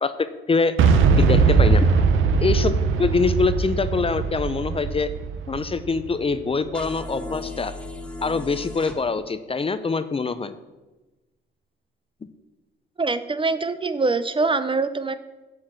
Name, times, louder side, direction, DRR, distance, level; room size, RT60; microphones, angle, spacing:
voice 1, 0.0-0.8 1.2-1.9 2.4-2.7 3.0-5.1 5.5-7.7 8.2-10.5, left 4 dB, 25° left, 12 dB, 0.6 m, -24 dB
Boom, 0.8-6.7, right 5 dB, 75° right, 0.9 m, -20 dB
sound 1, 6.7-9.0, left 3 dB, 5° left, 1.3 m, -36 dB
voice 2, 13.0-15.2, right 3 dB, 25° right, 13 dB, 0.6 m, -24 dB
9.2 x 4.7 x 7.5 m, 1.1 s
supercardioid pair, 65°, 21 cm